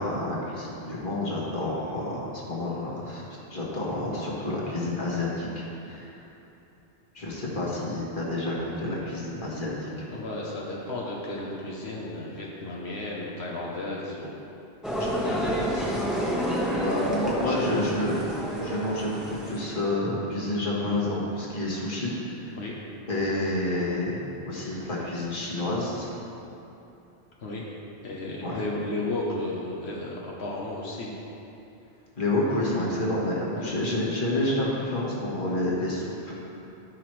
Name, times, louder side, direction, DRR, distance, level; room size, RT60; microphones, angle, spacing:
voice 1, 0.0-3.2 3.5-6.2 7.1-10.1 15.3-15.4 15.7-15.8 16.5-18.2 18.6-22.6 23.1-24.2 24.5-26.1 28.4-28.6 32.2-36.5, left 1 dB, 50° left, -5 dB, 1.7 m, -29 dB
voice 2, 10.1-14.4 15.0-16.0 17.4-17.9 22.6-22.8 27.4-27.7 28.0-31.2 33.5-33.7, left 2 dB, 80° left, -4 dB, 1.3 m, -34 dB
sound 1, 14.8-19.9, equal, ahead, 1.1 m, -29 dB
13.0 x 6.0 x 3.2 m, 2.9 s
omnidirectional pair, 1.1 m